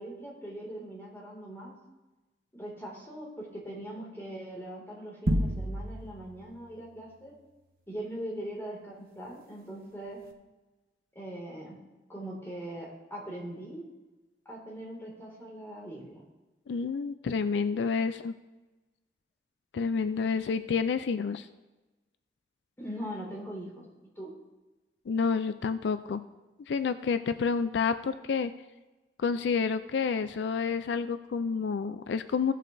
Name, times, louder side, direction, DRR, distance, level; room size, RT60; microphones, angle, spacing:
voice 1, 0.0-1.8 2.5-7.3 7.9-10.2 11.1-11.8 12.1-13.8 14.5-16.2 22.8-23.9 24.2-24.3, right 1 dB, 15° left, -3 dB, 2.3 m, -41 dB
sound 1, 5.3-6.2, equal, 55° right, 0.9 m, -28 dB
voice 2, 16.7-18.3 19.7-21.5 25.1-26.2 26.7-28.5 29.2-32.5, left 5 dB, 85° left, 11 dB, 0.4 m, -29 dB
15.5 x 7.5 x 2.6 m, 1.1 s
head